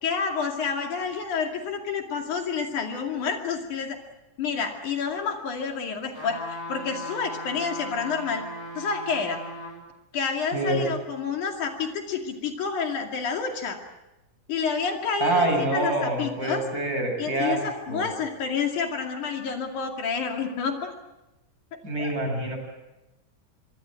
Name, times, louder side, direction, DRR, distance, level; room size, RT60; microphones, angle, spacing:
voice 1, 0.0-4.0 4.4-8.5 8.8-9.4 10.1-13.8 14.5-16.6 17.2-20.9 22.0-22.1, left 5 dB, 75° left, 3 dB, 3.9 m, -29 dB
sound 1, 6.1-9.8 10.3-10.4, equal, 20° left, 7.6 m, -37 dB
voice 2, 10.5-10.9 15.2-17.6 17.9-18.1 21.8-22.6, right 2 dB, 25° right, 3 dB, 8.0 m, -26 dB
25.0 x 24.5 x 7.7 m, 0.98 s
omnidirectional pair, 3.5 m